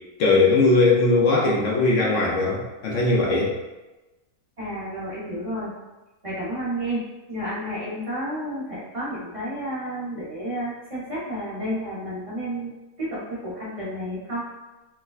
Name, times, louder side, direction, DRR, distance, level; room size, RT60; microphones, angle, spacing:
voice 1, 0.2-3.5, left 3 dB, 65° left, -3 dB, 0.8 m, -19 dB
voice 2, 4.6-5.7 6.2-7.0 7.3-12.7 13.0-14.4, equal, 35° right, -8 dB, 0.6 m, -31 dB
4.7 x 2.2 x 2.3 m, 1.1 s
omnidirectional pair, 1.8 m